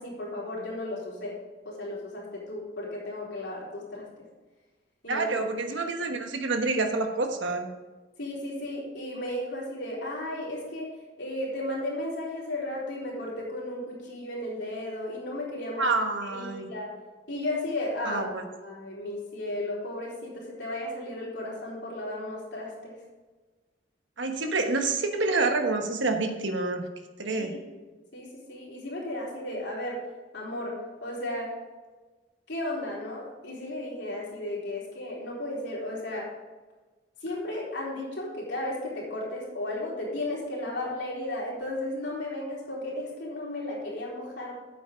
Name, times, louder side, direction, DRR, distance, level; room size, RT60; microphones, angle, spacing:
voice 1, 0.0-1.3 1.6-4.1 5.0-5.3 8.2-10.9 11.2-15.9 16.2-16.9 17.3-18.2 18.6-23.0 27.2-27.8 28.1-30.0 30.3-31.5 32.5-36.3 37.2-44.6, left 1 dB, 55° left, -5 dB, 3.9 m, -34 dB
voice 2, 5.1-7.7 15.8-16.7 18.0-18.4 24.2-26.8 27.2-27.6, right 3 dB, 65° right, 4 dB, 1.3 m, -28 dB
9.0 x 8.0 x 5.1 m, 1.3 s
head